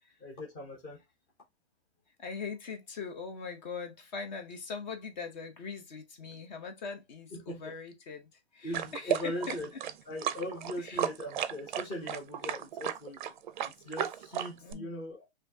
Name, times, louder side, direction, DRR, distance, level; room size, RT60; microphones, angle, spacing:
voice 1, 0.2-1.0 7.3-7.7 8.6-9.7 10.1-13.2 13.8-15.3, left 1 dB, 15° left, 0.7 m, -39 dB
voice 2, 2.2-9.6 10.8-11.0 14.6-15.0, left 5 dB, 40° left, 0.9 m, -41 dB
sound 1, 8.7-14.7, right 9 dB, 45° right, 0.5 m, -34 dB
4.2 x 2.7 x 2.7 m
hypercardioid pair, 170°, 34 cm